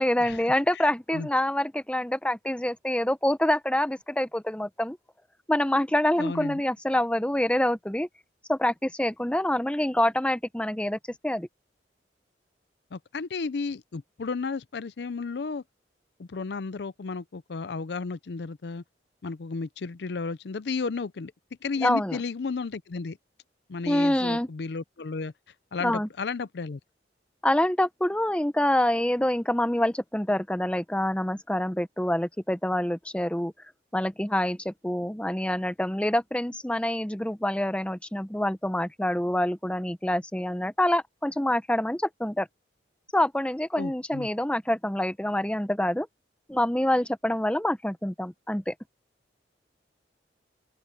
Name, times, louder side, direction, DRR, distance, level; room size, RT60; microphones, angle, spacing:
voice 1, 0.0-5.0 5.5-8.1 8.5-11.0 11.2-11.5 21.8-22.2 23.9-24.5 25.8-26.1 27.4-33.5 33.9-42.5 43.1-46.1 46.5-48.7, left 1 dB, 5° left, 0.7 m, -26 dB
voice 2, 0.7-1.3 6.2-6.6 12.9-15.6 16.2-18.8 19.2-21.3 21.6-23.2 23.7-25.3 25.7-26.8 43.8-44.3, left 4 dB, 65° left, 0.5 m, -33 dB
open air
head